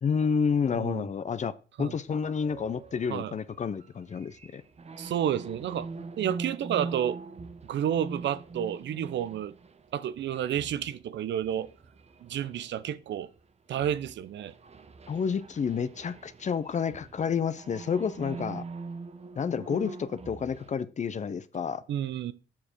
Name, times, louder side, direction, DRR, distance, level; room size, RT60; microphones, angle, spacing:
voice 1, 0.0-1.5 1.8-4.6 15.1-18.6 19.4-21.8, left 6 dB, 35° left, 0.6 m, -30 dB
voice 2, 0.7-1.1 1.8-1.9 3.1-3.3 5.0-5.9 6.2-7.2 7.6-9.5 9.9-11.7 12.2-13.3 13.7-14.5 21.9-22.3, right 10 dB, 65° right, 0.6 m, -30 dB
sound 1, 2.4-13.4 13.7-20.7, right 4 dB, 35° right, 0.9 m, -43 dB
7.4 x 6.6 x 4.5 m
cardioid pair, 90°, 20 cm